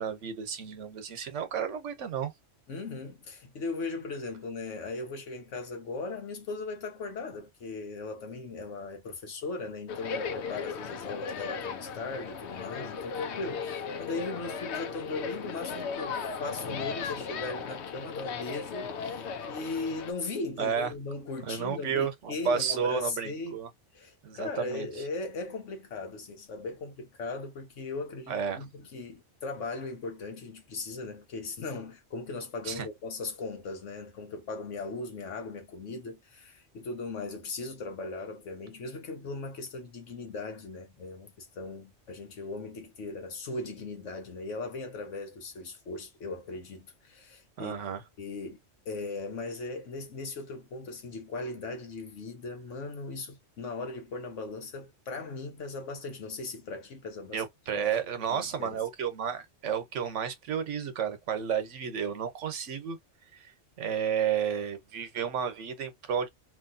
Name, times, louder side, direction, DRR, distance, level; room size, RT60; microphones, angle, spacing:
voice 1, 0.0-2.3 20.6-20.9 21.5-23.7 24.2-24.9 28.3-28.6 32.7-32.9 47.6-48.0 57.3-63.0 63.3-63.5 63.8-66.3, right 7 dB, 85° right, 1.2 m, -32 dB
voice 2, 2.7-23.6 23.9-47.8 48.2-48.6 48.8-57.4 57.7-57.8 58.3-58.8, left 3 dB, 90° left, 1.4 m, -38 dB
sound 1, 9.9-20.1, left 5 dB, 70° left, 0.9 m, -36 dB
3.0 x 2.7 x 2.6 m
omnidirectional pair, 1.2 m